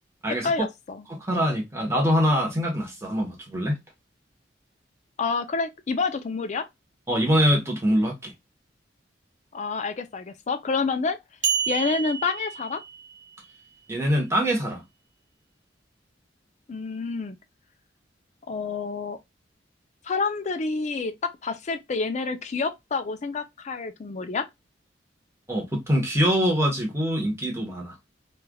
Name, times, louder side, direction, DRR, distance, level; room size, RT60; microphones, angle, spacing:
voice 1, 0.4-1.0 5.2-6.6 9.5-11.2 11.7-12.8 16.7-17.4 18.5-19.2 20.0-24.5, left 4 dB, 40° left, 0.4 m, -28 dB
voice 2, 1.1-3.8 7.1-8.3 13.9-14.8 25.5-27.9, equal, 15° right, 1.0 m, -24 dB
sound 1, 11.4-13.3, right 7 dB, 80° right, 0.9 m, -29 dB
3.2 x 2.4 x 2.2 m
head